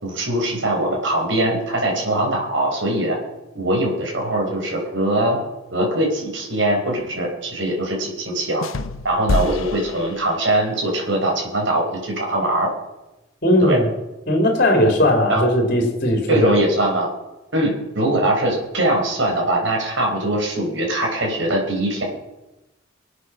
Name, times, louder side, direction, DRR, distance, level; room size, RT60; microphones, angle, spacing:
voice 1, 0.0-3.2 3.5-5.4 5.7-8.7 9.0-12.7 13.6-13.8 15.3-15.4 16.3-17.1 17.5-22.0, right 1 dB, 65° right, 0 dB, 4.7 m, -21 dB
sound 1, 8.6-10.8, left 2 dB, 90° left, 0.8 m, -27 dB
voice 2, 13.4-13.9 14.3-16.5, left 1 dB, 45° left, 2 dB, 3.1 m, -18 dB
24.5 x 8.5 x 6.2 m, 0.99 s
head